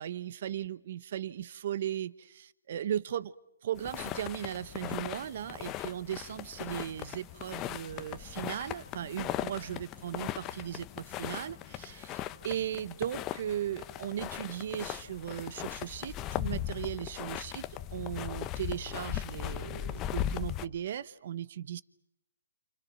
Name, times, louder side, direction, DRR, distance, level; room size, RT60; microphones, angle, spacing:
voice 1, 0.0-3.3 3.6-21.8, right 10 dB, 50° right, 17 dB, 1.1 m, -37 dB
sound 1, 3.8-20.7, left 12 dB, 20° left, 0.9 m, -38 dB
29.5 x 29.0 x 5.9 m, 0.83 s
hypercardioid pair, 155°, 0 cm